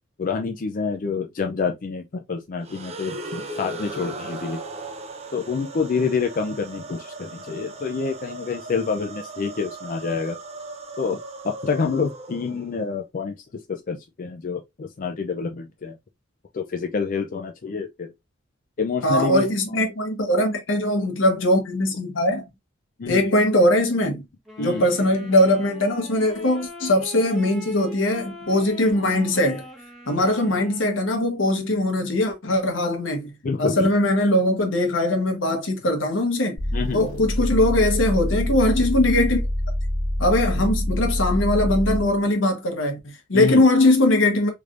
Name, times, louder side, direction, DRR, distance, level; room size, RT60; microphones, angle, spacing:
voice 1, 0.2-4.6 5.3-10.4 11.0-11.2 11.4-16.0 16.5-18.1 18.8-19.8 23.0-23.2 24.6-24.8 33.4-33.9 36.7-37.1 43.3-43.6, left 5 dB, 45° left, 0.4 m, -27 dB
sound 1, 2.6-12.8, right 2 dB, 35° right, 0.6 m, -37 dB
voice 2, 19.0-22.4 23.1-24.3 24.6-29.6 30.1-33.3 33.6-36.6 36.9-39.4 40.2-44.5, left 1 dB, 80° left, 1.1 m, -21 dB
sound 2, 24.4-31.0, equal, ahead, 1.1 m, -42 dB
sound 3, 36.6-42.2, equal, 90° right, 1.4 m, -25 dB
3.3 x 3.2 x 2.5 m
head